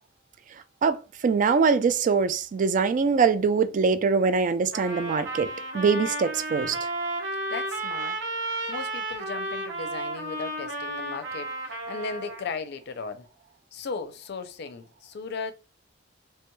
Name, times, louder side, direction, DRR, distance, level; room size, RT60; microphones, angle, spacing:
voice 1, 0.8-6.8, right 5 dB, 45° right, 0.3 m, -23 dB
Trumpet, 4.7-12.5, right 1 dB, 70° right, 0.8 m, -33 dB
voice 2, 7.5-8.2 8.7-13.3 13.7-15.5, left 4 dB, 60° left, 0.5 m, -36 dB
3.2 x 2.2 x 3.0 m
head